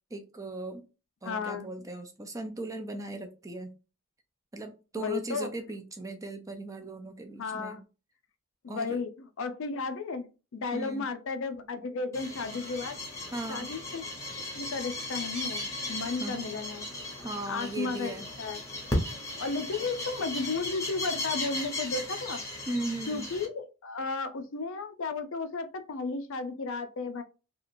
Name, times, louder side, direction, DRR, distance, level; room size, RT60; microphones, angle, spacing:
voice 1, 0.1-0.8 1.2-3.7 4.5-7.8 8.7-9.0 10.7-11.1 13.3-13.7 16.2-16.5 17.2-18.3 22.7-23.3, right 2 dB, 15° right, 0.4 m, -37 dB
voice 2, 1.2-1.7 5.0-5.5 7.4-7.8 8.6-13.0 13.5-14.0 14.5-16.8 17.5-18.6 19.4-22.4 23.1-27.2, left 4 dB, 65° left, 0.5 m, -34 dB
sound 1, 12.1-23.5, left 1 dB, 15° left, 0.8 m, -36 dB
2.9 x 2.4 x 2.5 m
head